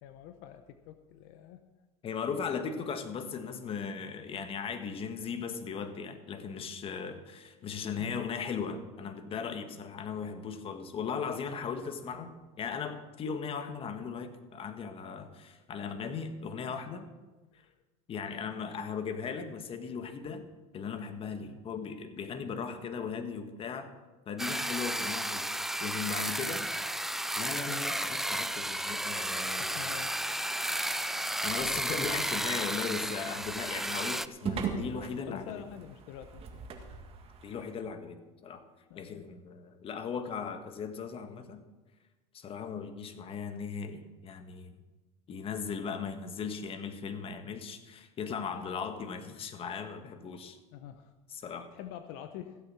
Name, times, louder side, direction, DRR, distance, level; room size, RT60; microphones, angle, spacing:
voice 1, 0.0-1.6 8.0-8.3 11.6-11.8 17.5-17.8 21.4-21.6 27.7-27.9 29.6-30.1 35.3-36.7 38.9-39.3 50.7-51.1 51.4-52.6, left 10 dB, 65° left, 9 dB, 0.9 m, -46 dB
voice 2, 2.0-17.1 18.1-20.4 20.7-23.9 24.3-26.7 27.4-29.8 31.4-35.6 37.4-38.2 38.4-38.6 38.9-41.6 42.3-44.7 45.3-50.6 51.3-51.7, left 6 dB, 35° left, 9 dB, 1.5 m, -38 dB
sound 1, 24.4-34.3, right 1 dB, ahead, 0.4 m, -33 dB
sound 2, 31.5-37.7, right 6 dB, 35° right, 2.0 m, -41 dB
15.5 x 8.0 x 6.2 m, 1.2 s
supercardioid pair, 120°, 17 cm